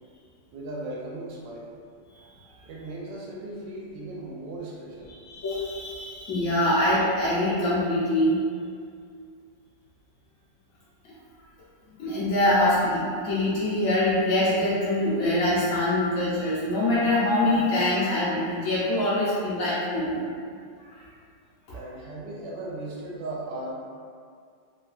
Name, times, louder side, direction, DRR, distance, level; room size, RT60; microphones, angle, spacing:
voice 1, 0.5-1.7 2.6-5.1 21.7-23.7, right 2 dB, 90° right, -4 dB, 1.3 m, -37 dB
voice 2, 5.2-8.4 12.0-20.2 20.9-21.0 21.7-21.8, left 1 dB, 70° left, -10 dB, 0.8 m, -24 dB
3.1 x 2.1 x 2.4 m, 2.2 s
omnidirectional pair, 1.9 m